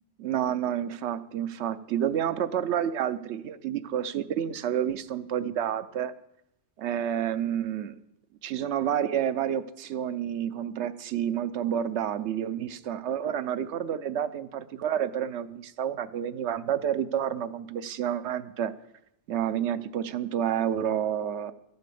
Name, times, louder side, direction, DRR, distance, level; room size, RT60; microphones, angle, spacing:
voice 1, 0.2-6.1 6.8-8.0 8.4-18.7 19.3-21.5, right 9 dB, 90° right, 14 dB, 1.0 m, -29 dB
13.5 x 8.3 x 6.9 m, 0.80 s
omnidirectional pair, 1.1 m